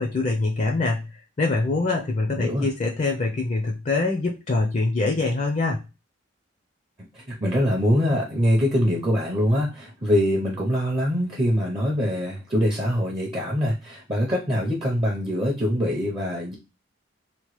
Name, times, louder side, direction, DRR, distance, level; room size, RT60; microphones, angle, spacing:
voice 1, 0.0-5.9, left 3 dB, 35° left, 1 dB, 0.4 m, -24 dB
voice 2, 2.3-2.7 7.1-16.5, equal, 25° right, -2 dB, 0.5 m, -23 dB
2.9 x 2.1 x 3.0 m, 0.28 s
head